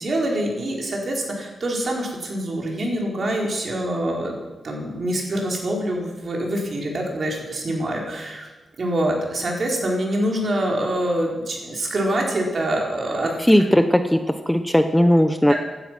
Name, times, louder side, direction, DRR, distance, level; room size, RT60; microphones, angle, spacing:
voice 1, 0.0-4.3 4.6-8.5 8.8-13.3 15.5-15.6, right 1 dB, 55° right, -1 dB, 4.6 m, -25 dB
voice 2, 13.5-15.5, equal, 5° left, 8 dB, 0.9 m, -17 dB
16.5 x 12.0 x 6.1 m, 1.2 s
cardioid pair, 80°, 0 cm